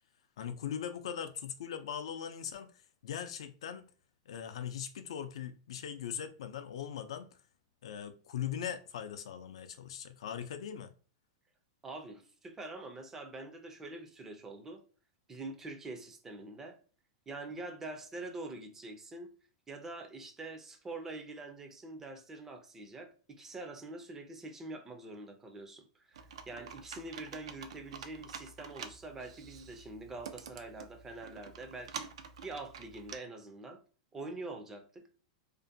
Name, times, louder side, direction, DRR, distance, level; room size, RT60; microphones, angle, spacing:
voice 1, 0.4-3.9 4.3-7.3 7.8-10.9, left 9 dB, 85° left, 0.3 m, -40 dB
voice 2, 11.8-14.8 15.3-16.8 17.3-19.3 19.7-32.1 32.4-33.8 34.1-35.1, right 2 dB, 15° right, 0.3 m, -45 dB
Computer keyboard, 26.1-33.2, right 6 dB, 90° right, 0.4 m, -48 dB
2.5 x 2.1 x 2.5 m
supercardioid pair, 155°, 3 cm